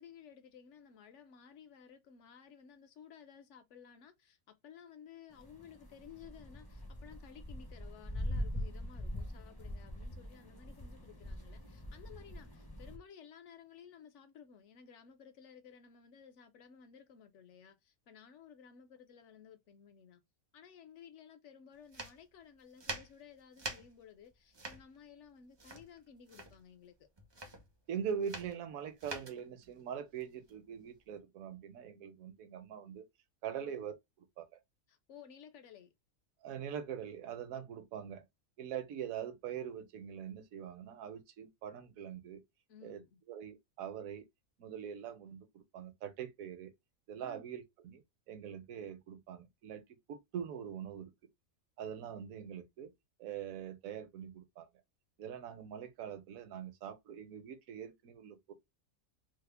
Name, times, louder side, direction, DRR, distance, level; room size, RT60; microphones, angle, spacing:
voice 1, 0.0-20.2 20.5-27.1 33.5-33.8 34.9-35.9 42.7-43.2 47.2-47.5, left 7 dB, 65° left, 0.9 m, -56 dB
sound 1, 5.3-13.0, left 1 dB, 25° left, 0.5 m, -43 dB
sound 2, 21.8-31.1, right 2 dB, 45° right, 0.3 m, -46 dB
voice 2, 27.9-33.1 33.4-33.9 34.4-34.6 36.4-38.2 38.6-42.4 42.8-43.0 43.3-44.2 44.6-46.7 47.1-48.0 48.3-49.8 50.1-51.1 51.8-52.9 53.2-54.7 55.2-58.5, right 8 dB, 75° right, 1.1 m, -43 dB
3.5 x 2.1 x 3.2 m
omnidirectional pair, 1.5 m